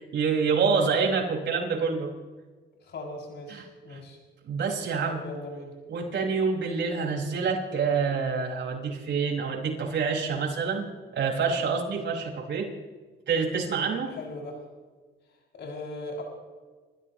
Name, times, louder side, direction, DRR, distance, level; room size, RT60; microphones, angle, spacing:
voice 1, 0.0-2.1 3.5-4.0 4.5-5.2 5.9-10.9 11.1-12.7 13.3-14.1, right 5 dB, 60° right, 0 dB, 5.3 m, -27 dB
voice 2, 2.8-4.2 5.0-5.7 14.1-14.6 15.5-16.2, left 2 dB, 65° left, -1 dB, 6.7 m, -38 dB
29.5 x 15.0 x 3.1 m, 1.4 s
cardioid pair, 90°, 20 cm